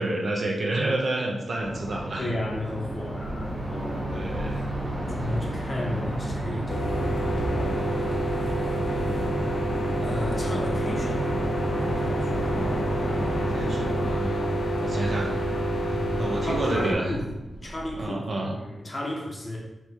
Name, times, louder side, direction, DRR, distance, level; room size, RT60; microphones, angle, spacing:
voice 1, 0.0-2.3 4.1-4.6 13.3-14.5 14.8-15.4 15.8-17.2 17.9-18.6, right 2 dB, 45° right, -1 dB, 0.7 m, -29 dB
sound 1, 1.6-14.1, right 1 dB, ahead, 1.3 m, -31 dB
voice 2, 2.2-4.3 5.1-8.1 10.0-11.5 12.0-12.4 14.8-15.3 15.9-17.3 17.6-18.2 18.5-19.6, left 1 dB, 25° left, -1 dB, 0.7 m, -34 dB
sound 2, 6.7-16.9, right 1 dB, 85° left, 0.8 m, -28 dB
sound 3, 7.0-18.0, right 1 dB, 85° right, 1.5 m, -42 dB
4.6 x 2.8 x 3.5 m, 0.95 s
wide cardioid pair, 170°, 0 cm